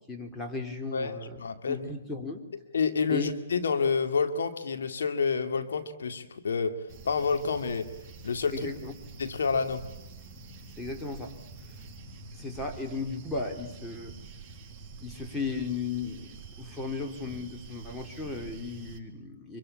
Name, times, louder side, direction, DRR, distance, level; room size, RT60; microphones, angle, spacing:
voice 1, 0.0-2.4 3.1-3.3 8.5-8.9 10.8-11.3 12.4-14.1 15.0-19.6, left 4 dB, 10° left, 2 dB, 3.7 m, -36 dB
voice 2, 0.9-1.8 2.7-6.7 7.0-7.9 8.2-8.7 9.2-9.8, left 5 dB, 80° left, 9 dB, 2.2 m, -28 dB
sound 1, 6.9-19.0, right 4 dB, 15° right, 6.0 m, -47 dB
25.5 x 24.5 x 8.7 m, 0.88 s
hypercardioid pair, 140°, 0 cm